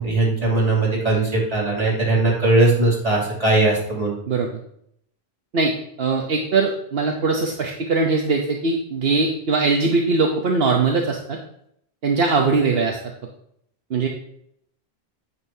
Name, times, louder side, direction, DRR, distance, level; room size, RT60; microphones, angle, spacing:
voice 1, 0.0-4.1, right 2 dB, 35° right, -5 dB, 3.0 m, -19 dB
voice 2, 6.0-11.4 12.0-13.0 13.9-14.1, right 4 dB, 70° right, 1 dB, 1.1 m, -21 dB
9.0 x 8.0 x 2.7 m, 0.70 s
omnidirectional pair, 1.0 m